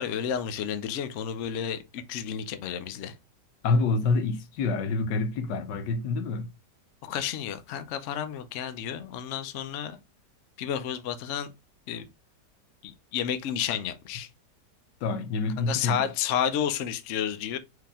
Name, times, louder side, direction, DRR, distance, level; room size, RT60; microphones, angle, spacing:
voice 1, 0.0-3.2 7.0-10.0 10.6-11.5 11.9-12.1 12.8-14.3 15.6-17.6, left 9 dB, 60° left, 0.8 m, -31 dB
voice 2, 3.6-6.5 15.0-16.1, left 3 dB, 85° left, 1.4 m, -27 dB
4.8 x 2.9 x 3.5 m
omnidirectional pair, 1.8 m